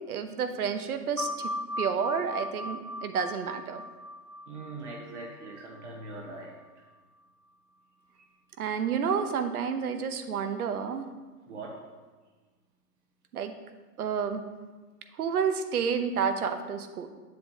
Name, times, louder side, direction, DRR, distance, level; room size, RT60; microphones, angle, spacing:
voice 1, 0.0-1.5 1.8-3.8 8.6-11.1 13.3-13.5 14.0-14.4 15.2-17.1, right 6 dB, 70° right, 8 dB, 0.8 m, -30 dB
sound 1, 1.2-6.3, left 1 dB, 70° left, 1.1 m, -38 dB
voice 2, 4.5-6.6 9.2-9.3 11.5-11.9, right 2 dB, 45° right, 0 dB, 1.1 m, -41 dB
7.6 x 7.1 x 2.8 m, 1.3 s
hypercardioid pair, 155°, 47 cm